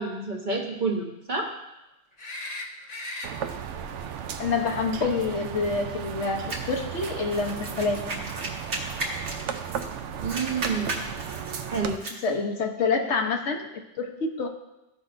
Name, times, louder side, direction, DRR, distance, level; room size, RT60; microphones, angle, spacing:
voice 1, 0.0-1.5 10.2-11.1 11.7-12.0, right 4 dB, 40° right, 0 dB, 1.3 m, -29 dB
sound 1, 2.2-3.3 6.2-6.3, left 1 dB, 40° left, 0.9 m, -37 dB
sound 2, 3.2-12.0, right 8 dB, 90° right, 0.9 m, -35 dB
voice 2, 4.4-8.1 12.2-14.5, left 4 dB, 75° left, 3 dB, 1.2 m, -27 dB
sound 3, 6.5-9.9 10.2-12.2, right 2 dB, 75° right, 1.6 m, -35 dB
14.5 x 5.7 x 2.5 m, 0.94 s
omnidirectional pair, 1.2 m